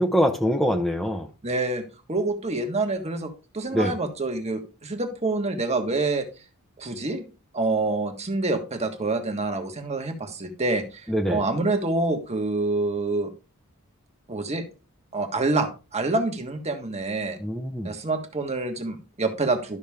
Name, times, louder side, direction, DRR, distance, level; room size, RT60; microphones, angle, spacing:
voice 1, 0.0-1.3 3.7-3.9 11.1-11.4 17.4-17.9, equal, ahead, 2 dB, 0.9 m, -24 dB
voice 2, 1.4-1.8 2.1-6.2 6.8-7.2 7.5-13.3 14.3-14.6 15.1-17.4 17.8-19.8, right 2 dB, 30° right, 5 dB, 1.6 m, -27 dB
12.5 x 6.2 x 3.6 m, 0.32 s
head